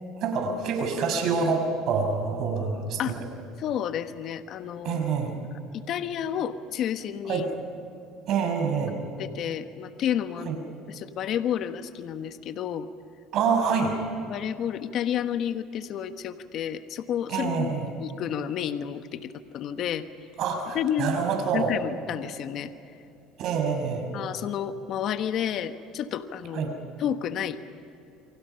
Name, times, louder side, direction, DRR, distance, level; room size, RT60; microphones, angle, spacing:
voice 1, 0.2-3.1 4.8-5.3 7.3-7.4 8.3-8.9 10.4-10.6 13.3-14.0 17.3-17.9 20.4-21.7 23.4-24.1 26.5-26.7, right 5 dB, 60° right, 4 dB, 6.0 m, -26 dB
voice 2, 3.6-5.0 5.7-7.5 9.2-12.9 14.3-20.0 20.7-21.2 21.5-22.7 24.1-26.7 27.0-27.6, left 9 dB, 55° left, 9 dB, 1.2 m, -31 dB
29.5 x 24.0 x 5.7 m, 2.7 s
supercardioid pair, 105°, 0 cm